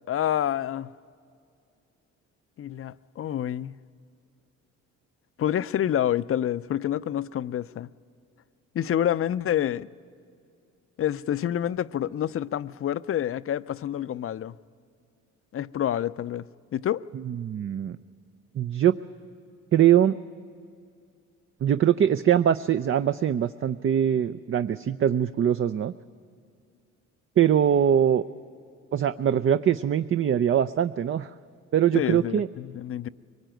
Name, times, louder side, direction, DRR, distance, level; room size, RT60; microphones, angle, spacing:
voice 1, 0.1-0.9 2.6-3.8 5.4-7.9 8.7-9.9 11.0-14.6 15.5-16.5 16.7-17.0 31.9-33.1, left 10 dB, 45° left, 0.5 m, -28 dB
voice 2, 17.3-18.0 18.6-18.9 19.7-20.2 21.6-25.9 27.4-28.2 28.9-31.3 31.7-32.5, right 9 dB, 45° right, 0.5 m, -22 dB
23.0 x 19.5 x 9.1 m
cardioid pair, 90°, 30 cm